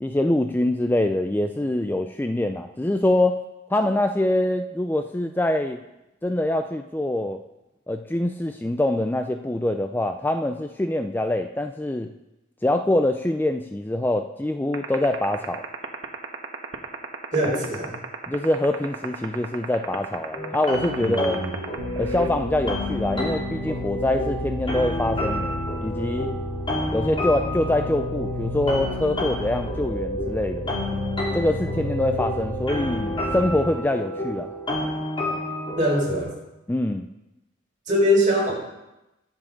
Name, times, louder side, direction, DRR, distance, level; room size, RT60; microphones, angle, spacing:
voice 1, 0.0-3.4 3.7-5.8 6.2-7.4 7.9-12.1 12.6-15.6 18.3-21.4 22.0-26.3 26.9-30.7 31.3-34.5 36.7-37.1, left 1 dB, 10° left, 6 dB, 0.4 m, -24 dB
sound 1, 14.7-22.3, right 5 dB, 80° right, 1.3 m, -31 dB
voice 2, 17.3-18.0 21.0-21.5 35.8-36.3 37.9-38.5, equal, 40° right, -4 dB, 5.2 m, -22 dB
sound 2, 20.3-36.2, left 1 dB, 25° left, 2.6 m, -30 dB
sound 3, 21.8-33.6, left 1 dB, 80° left, 4.3 m, -32 dB
22.0 x 7.3 x 3.9 m, 0.95 s
head